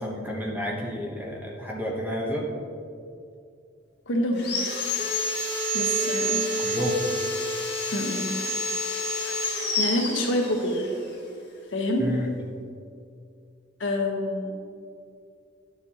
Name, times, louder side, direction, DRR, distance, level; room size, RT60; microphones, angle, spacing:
voice 1, 0.0-2.5 6.6-6.9 12.0-12.3, equal, 10° right, -2 dB, 1.0 m, -30 dB
voice 2, 4.1-4.5 5.7-6.4 7.9-8.3 9.3-9.4 9.8-10.9 11.7-12.1 13.8-14.5, left 1 dB, 70° left, 1 dB, 1.1 m, -27 dB
Sawing, 4.4-10.8, left 1 dB, 55° left, 1.9 m, -28 dB
10.0 x 7.0 x 2.9 m, 2.4 s
head